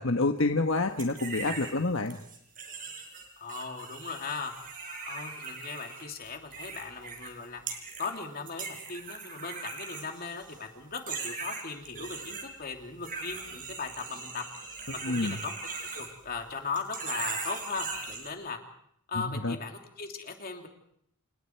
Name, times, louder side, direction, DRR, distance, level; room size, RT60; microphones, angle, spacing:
voice 1, 0.0-2.2 15.0-15.4 19.1-19.6, left 2 dB, 65° left, 5 dB, 1.4 m, -28 dB
sound 1, 1.0-1.7 2.1-7.3 7.7-8.2 8.5-10.6 11.0-12.4 13.0-16.5 16.7-18.3, right 5 dB, 40° right, 5.3 m, -39 dB
voice 2, 3.4-4.5 5.1-7.6 8.0-14.4 15.0-18.6 19.1-20.7, left 4 dB, 45° left, 3 dB, 3.0 m, -38 dB
29.5 x 29.0 x 4.7 m, 0.71 s
head